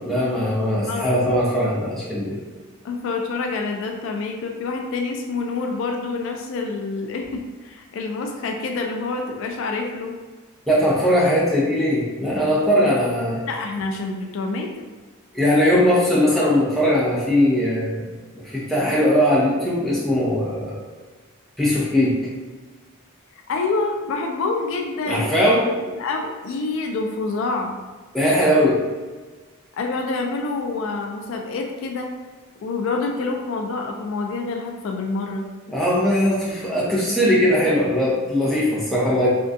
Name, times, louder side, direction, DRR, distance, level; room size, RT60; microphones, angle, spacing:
voice 1, 0.0-2.4 10.7-13.4 15.3-18.0 18.3-20.8 21.6-22.2 25.0-25.7 28.1-28.8 35.7-39.3, equal, ahead, -7 dB, 0.6 m, -20 dB
voice 2, 0.9-1.2 2.8-10.1 13.5-14.8 23.5-25.6 26.0-27.8 29.7-32.1 32.6-35.5, left 3 dB, 65° left, 2 dB, 0.3 m, -27 dB
3.5 x 2.2 x 2.6 m, 1.3 s
head